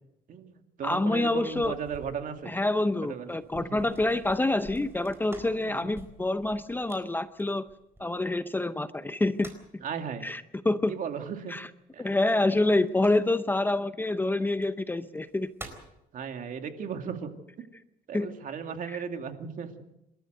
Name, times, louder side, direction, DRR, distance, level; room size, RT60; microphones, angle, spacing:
voice 1, 0.3-2.5 3.1-3.3 3.5-3.8 9.8-10.3 10.9-11.5 11.9-12.1 16.1-17.3 18.1-19.7, right 7 dB, 50° right, 6 dB, 2.4 m, -36 dB
voice 2, 0.8-1.7 2.5-7.7 8.0-9.8 10.2-10.9 11.5-11.7 12.0-15.5 18.1-18.3 18.9-19.0, left 2 dB, 10° left, 12 dB, 0.7 m, -27 dB
sound 1, 1.0-8.4 9.0-9.8 12.2-13.5 14.5-14.6 15.2-16.0, right 2 dB, 15° right, 4.2 m, -50 dB
27.5 x 13.0 x 7.9 m, 0.87 s
cardioid pair, 110°, 17 cm